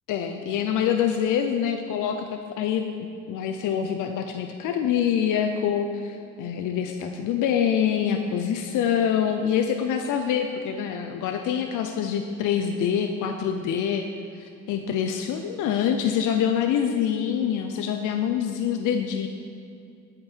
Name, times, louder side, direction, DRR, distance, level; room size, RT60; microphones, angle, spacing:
voice 1, 0.1-2.9 3.3-14.1 14.3-19.3, left 8 dB, 85° left, 5 dB, 0.6 m, -25 dB
15.0 x 5.2 x 4.5 m, 2.5 s
cardioid pair, 90°, 30 cm